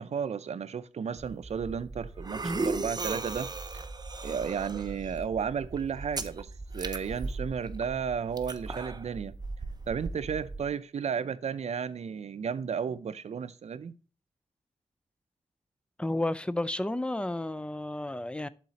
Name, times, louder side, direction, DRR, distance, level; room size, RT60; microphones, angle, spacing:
voice 1, 0.0-3.5 3.7-3.9 4.2-9.3 9.9-13.9, right 7 dB, 75° right, 0.5 m, -33 dB
sound 1, 1.2-10.7, right 3 dB, 35° right, 0.6 m, -37 dB
voice 2, 16.0-18.5, left 1 dB, 10° left, 0.5 m, -31 dB
11.5 x 4.1 x 2.8 m
cardioid pair, 60°, 11 cm